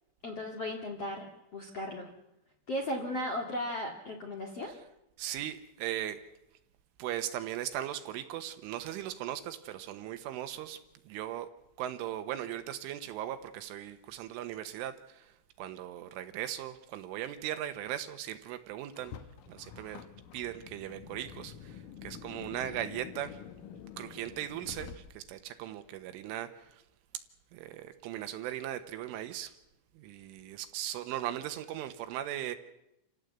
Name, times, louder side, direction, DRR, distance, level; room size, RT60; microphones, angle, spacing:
voice 1, 0.2-1.3 1.5-2.1 2.7-4.7, left 1 dB, 50° left, 1 dB, 1.9 m, -36 dB
voice 2, 5.2-6.3 7.0-11.5 11.8-19.2 19.5-20.1 20.3-23.4 24.0-26.8 27.5-29.6 30.0-32.6, right 12 dB, 80° right, 9 dB, 3.6 m, -38 dB
Car, 18.9-25.5, left 8 dB, 85° left, 1.8 m, -47 dB
28.0 x 16.0 x 8.1 m, 0.90 s
omnidirectional pair, 5.8 m